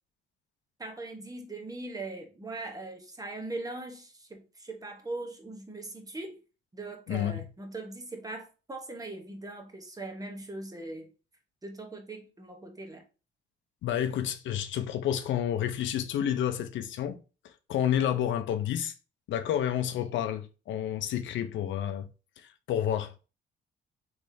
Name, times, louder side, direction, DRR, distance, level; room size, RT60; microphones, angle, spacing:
voice 1, 0.8-6.4 6.7-11.1 11.6-13.0, right 2 dB, 20° right, 0.9 m, -40 dB
voice 2, 7.1-7.4 13.8-17.2 17.4-18.9 19.3-22.1 22.4-23.1, left 10 dB, 75° left, 0.5 m, -30 dB
3.5 x 3.1 x 2.6 m
cardioid pair, 90°, 20 cm